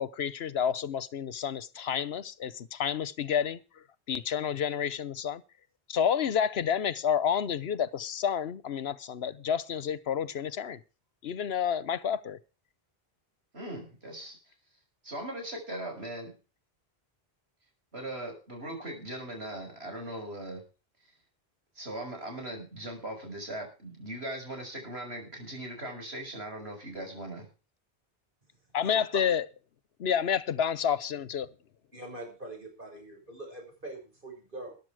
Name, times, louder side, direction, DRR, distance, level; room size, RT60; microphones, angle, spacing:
voice 1, 0.0-3.6 4.1-5.4 5.9-10.8 11.2-12.4 28.7-29.4 30.0-31.5, left 8 dB, 75° left, 1.1 m, -29 dB
voice 2, 13.5-14.4 15.0-16.3 17.9-20.6 21.8-27.5, right 1 dB, 85° right, 6.3 m, -39 dB
voice 3, 31.9-34.8, right 2 dB, 55° right, 6.3 m, -43 dB
14.0 x 11.5 x 4.8 m
omnidirectional pair, 1.0 m